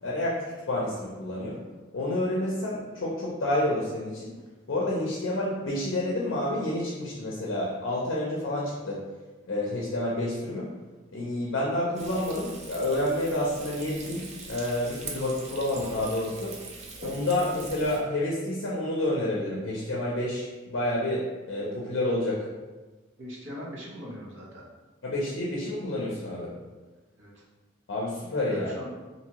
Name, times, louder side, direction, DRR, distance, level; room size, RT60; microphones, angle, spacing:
voice 1, 0.0-1.6 1.9-4.3 4.7-9.0 9.5-10.7 11.1-14.2 14.5-16.5 17.0-22.5 25.0-26.5 27.9-28.9, left 1 dB, 60° left, -5 dB, 0.5 m, -29 dB
Frying (food), 12.0-18.0, right 3 dB, 30° right, 0.3 m, -42 dB
voice 2, 23.2-24.7 27.2-27.4 28.5-28.9, equal, 65° right, -4 dB, 0.8 m, -41 dB
2.7 x 2.7 x 2.8 m, 1.2 s
head